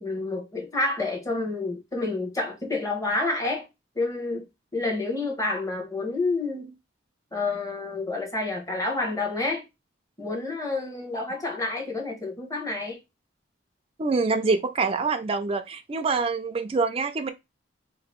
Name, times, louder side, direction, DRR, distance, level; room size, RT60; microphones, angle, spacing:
voice 1, 0.0-3.7 3.9-4.4 4.7-6.7 7.3-9.7 10.2-13.0, left 2 dB, 15° left, 1.1 m, -29 dB
voice 2, 14.0-17.3, right 4 dB, 30° right, 0.4 m, -25 dB
2.9 x 2.6 x 4.4 m
head